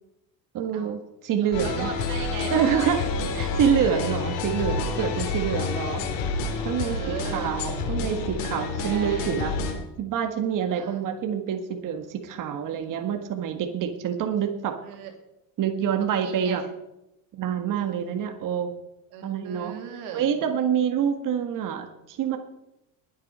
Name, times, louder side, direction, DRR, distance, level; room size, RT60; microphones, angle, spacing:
voice 1, 0.5-1.9 2.5-3.0 3.3-6.0 6.6-9.5 10.0-14.7 15.6-16.6 17.3-18.7 19.2-19.8 20.1-22.4, right 8 dB, 45° right, 6 dB, 1.6 m, -26 dB
voice 2, 1.4-2.5 2.8-3.1 6.7-7.5 8.8-9.5 10.7-11.0 14.8-15.1 16.2-16.6 19.1-20.3, right 7 dB, 90° right, 4 dB, 2.9 m, -38 dB
sound 1, 1.5-9.7, left 4 dB, 70° left, 3.6 m, -29 dB
20.5 x 8.1 x 5.5 m, 0.89 s
cardioid pair, 125°, 45 cm